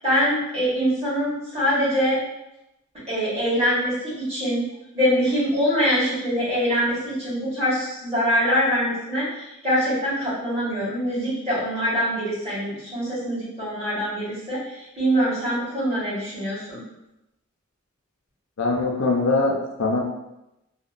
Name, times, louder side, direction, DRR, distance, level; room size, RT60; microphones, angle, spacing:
voice 1, 0.0-2.2 3.1-4.6 4.9-16.8, equal, 30° right, -9 dB, 1.3 m, -24 dB
voice 2, 18.6-20.0, left 3 dB, 65° left, -1 dB, 0.5 m, -22 dB
2.8 x 2.2 x 2.4 m, 0.91 s
head